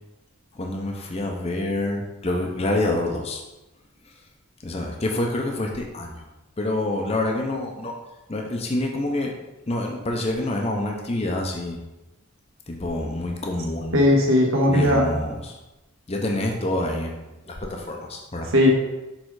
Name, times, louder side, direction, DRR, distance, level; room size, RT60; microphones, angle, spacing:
voice 1, 0.6-3.4 4.6-6.1 6.6-7.9 8.3-9.3 9.7-11.8 12.7-14.0 14.7-15.5 16.1-17.2 17.5-18.5, left 1 dB, 30° left, 1 dB, 0.6 m, -27 dB
voice 2, 13.9-15.1 18.5-18.7, left 1 dB, 70° right, 0 dB, 1.4 m, -17 dB
6.4 x 3.7 x 4.7 m, 1.0 s
head